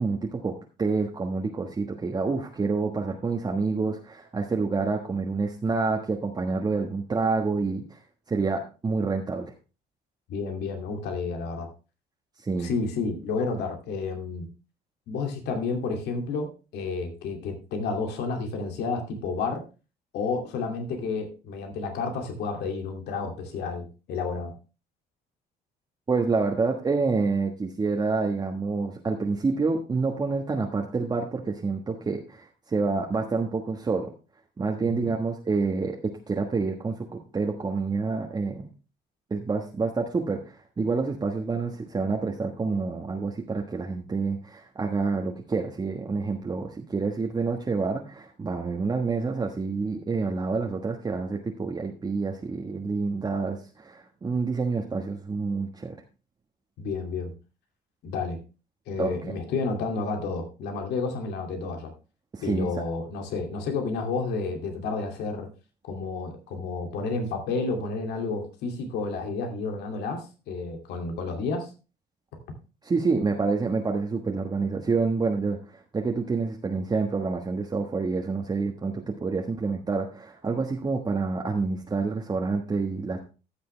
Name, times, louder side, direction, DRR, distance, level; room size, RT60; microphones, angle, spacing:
voice 1, 0.0-8.0 8.3-9.5 12.4-12.7 26.1-34.1 34.6-36.0 36.3-38.7 39.3-55.9 59.0-59.1 62.3-62.7 72.8-83.2, right 4 dB, 25° right, 1 dB, 1.4 m, -28 dB
voice 2, 10.3-11.7 12.6-14.5 15.1-19.6 20.1-24.5 34.8-35.1 56.8-57.3 58.0-58.4 58.9-61.9 62.4-65.5 65.8-71.7, left 4 dB, 80° left, 3 dB, 2.5 m, -31 dB
14.5 x 6.8 x 3.3 m, 0.32 s
cardioid pair, 110°, 17 cm